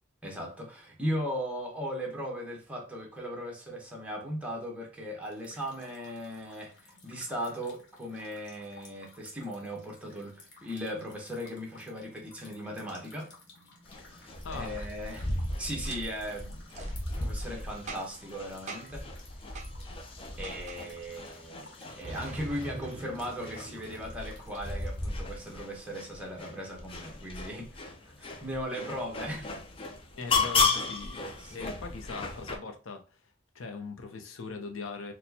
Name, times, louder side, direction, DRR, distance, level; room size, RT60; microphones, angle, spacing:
voice 1, 0.2-13.3 14.1-15.3 15.6-16.6 17.2-19.1 20.4-27.8 28.2-29.5 31.4-31.7, equal, 5° right, 0.9 m, -38 dB
sound 1, 5.2-25.1, left 2 dB, 60° left, 1.1 m, -56 dB
sound 2, 13.9-32.6, left 3 dB, 25° left, 0.4 m, -35 dB
voice 2, 14.4-14.9 30.1-33.2 33.5-35.1, left 4 dB, 75° left, 0.6 m, -40 dB
Boom, 15.8-16.0 16.7-16.9 17.9-18.3 18.7-19.0 19.5-19.7 20.4-20.8 22.0-24.7, right 3 dB, 35° right, 0.5 m, -43 dB
4.2 x 2.2 x 2.7 m
head